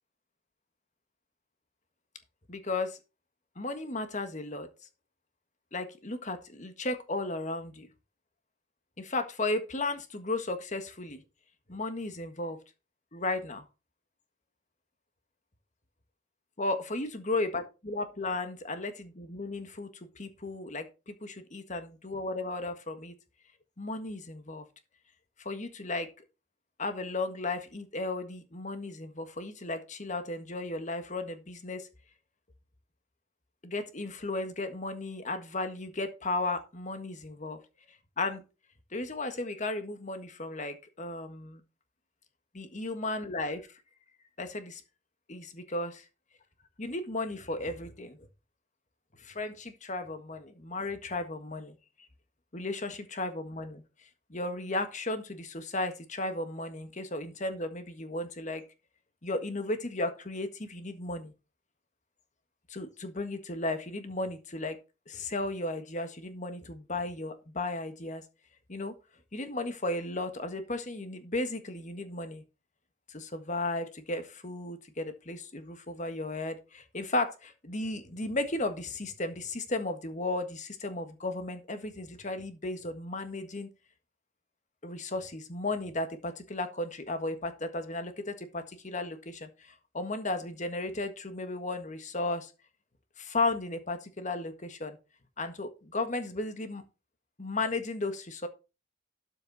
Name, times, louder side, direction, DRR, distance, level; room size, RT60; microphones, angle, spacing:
voice 1, 2.5-3.0 3.5-4.7 5.7-7.9 9.0-11.2 11.7-12.6 13.1-13.6 16.6-19.9 20.1-23.1 23.8-24.6 25.4-26.1 26.8-31.9 33.6-37.6 38.2-38.4 38.9-41.6 42.5-43.6 44.4-44.8 45.3-46.0 46.8-48.3 49.2-51.8 52.5-53.8 54.3-58.6 59.2-61.3 62.7-64.8 65.1-68.2 68.7-68.9 69.3-72.4 73.1-83.7 84.8-92.5 93.2-95.0 95.4-96.8 97.4-98.5, left 2 dB, 35° left, 1.5 m, -35 dB
12.5 x 6.4 x 4.1 m
head